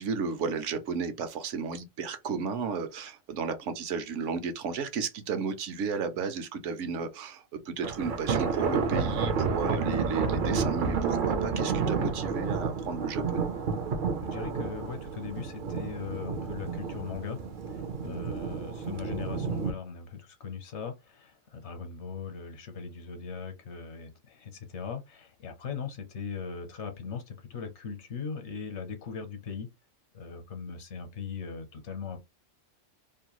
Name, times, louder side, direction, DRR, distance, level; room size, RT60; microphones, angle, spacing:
voice 1, 0.0-13.5 18.0-18.4, right 5 dB, 75° right, 1.0 m, -33 dB
sound 1, 7.8-19.7, right 5 dB, 55° right, 0.6 m, -30 dB
voice 2, 14.2-17.4 17.7-29.7 30.1-32.2, left 6 dB, 65° left, 1.0 m, -39 dB
2.7 x 2.2 x 2.9 m
omnidirectional pair, 1.3 m